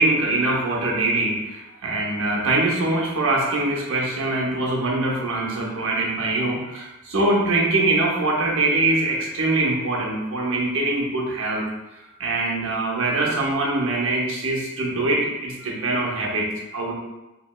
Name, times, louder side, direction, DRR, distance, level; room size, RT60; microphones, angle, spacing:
voice 1, 0.0-11.6 12.2-16.9, right 2 dB, 65° right, -3 dB, 0.7 m, -23 dB
3.1 x 2.8 x 2.2 m, 1.0 s
head